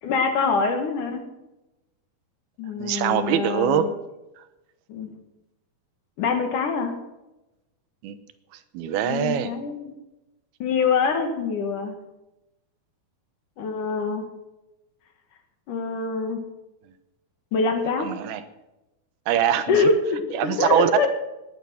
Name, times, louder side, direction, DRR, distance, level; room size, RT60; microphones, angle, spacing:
voice 1, 0.0-1.2 2.6-3.9 4.9-5.1 6.2-7.0 9.1-9.9 10.6-11.9 13.6-14.3 15.7-16.4 17.5-18.1 19.7-21.1, left 4 dB, 60° left, 5 dB, 3.1 m, -24 dB
voice 2, 2.8-3.9 8.0-8.2 8.7-9.5 18.0-18.4 19.3-19.9 20.3-21.1, right 10 dB, 80° right, 11 dB, 2.9 m, -23 dB
18.5 x 11.0 x 5.7 m, 0.98 s
omnidirectional pair, 4.4 m